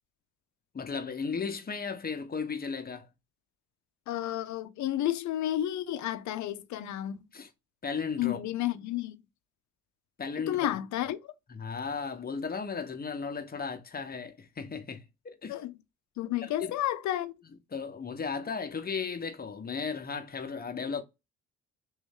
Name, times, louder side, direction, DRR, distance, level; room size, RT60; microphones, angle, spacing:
voice 1, 0.7-3.1 7.3-7.5 7.8-8.4 10.2-10.7 11.5-15.6 16.4-16.7 17.7-21.0, left 5 dB, 30° left, 0.9 m, -35 dB
voice 2, 4.1-7.2 8.2-9.2 10.5-11.3 15.5-15.8 16.2-17.3, left 13 dB, 70° left, 0.6 m, -31 dB
3.1 x 3.1 x 3.6 m
cardioid pair, 90°, 30 cm